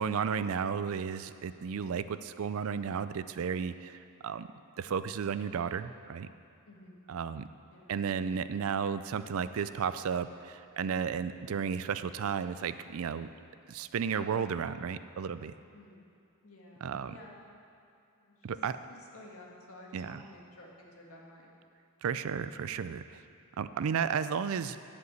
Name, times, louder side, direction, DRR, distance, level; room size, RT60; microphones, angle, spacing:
voice 1, 0.0-4.5 4.8-6.3 7.1-7.5 7.9-13.3 13.7-15.5 16.8-17.1 18.4-18.7 19.9-20.2 22.0-23.2 23.6-24.8, right 6 dB, 65° right, 12 dB, 0.4 m, -33 dB
voice 2, 6.6-7.0 7.7-8.0 15.7-16.0 16.4-17.4 18.1-18.6 19.1-21.5, left 1 dB, 70° left, -2 dB, 1.8 m, -52 dB
11.0 x 5.2 x 8.0 m, 2.5 s
head